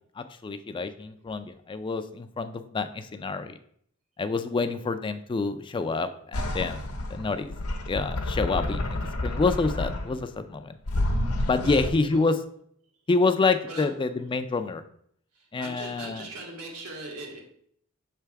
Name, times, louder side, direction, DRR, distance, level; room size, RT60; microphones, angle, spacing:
voice 1, 0.2-3.5 4.2-7.5 7.9-10.7 11.5-12.4 13.1-14.8 15.5-16.3, left 3 dB, 25° left, 9 dB, 0.3 m, -27 dB
sound 1, 6.3-10.3 10.9-11.9, left 1 dB, 90° left, 0.8 m, -29 dB
voice 2, 11.6-12.2 13.7-13.9 15.3-17.4, right 2 dB, 80° right, 0 dB, 1.7 m, -40 dB
6.7 x 3.4 x 4.5 m, 0.66 s
head